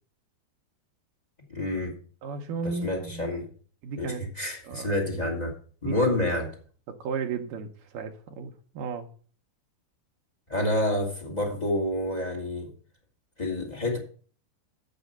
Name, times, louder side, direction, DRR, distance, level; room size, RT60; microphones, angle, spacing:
voice 1, 1.5-2.0 2.6-3.5 4.0-5.5 5.8-6.5 10.5-12.7 13.4-14.0, left 1 dB, 30° left, 0.7 m, -28 dB
voice 2, 2.2-3.3 3.8-4.2 4.6-4.9 5.8-5.9 7.0-9.1, right 5 dB, 75° right, 2.1 m, -34 dB
8.3 x 6.8 x 6.6 m
omnidirectional pair, 4.8 m